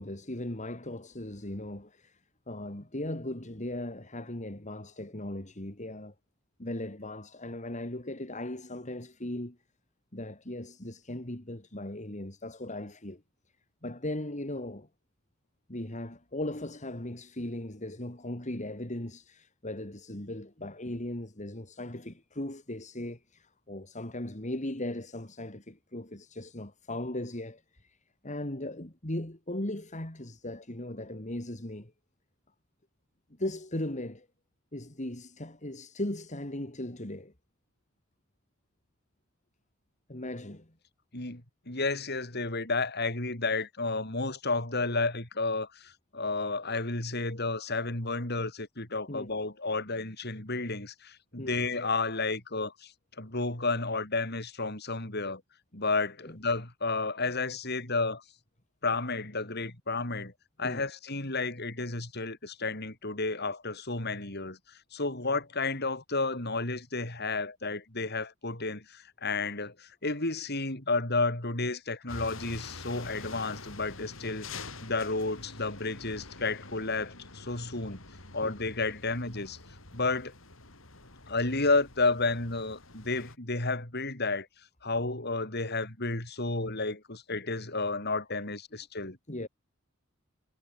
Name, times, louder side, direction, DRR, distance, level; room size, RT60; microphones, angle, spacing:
voice 1, 0.0-6.1 6.6-9.6 10.1-13.2 13.8-14.9 15.7-28.0 28.2-31.9 33.4-34.3 34.7-37.3 40.1-40.7 49.1-49.3 51.4-51.6 56.2-56.3 60.6-60.8 78.4-78.5 89.3-89.5, left 1 dB, 35° left, 3.1 m, -38 dB
voice 2, 41.1-52.9 53.2-55.4 55.7-58.2 58.8-60.3 60.6-64.6 64.9-78.0 78.3-79.6 79.9-80.3 81.3-84.5 84.8-89.2, left 3 dB, 55° left, 6.0 m, -31 dB
sound 1, 72.1-83.4, left 3 dB, 75° left, 6.8 m, -46 dB
head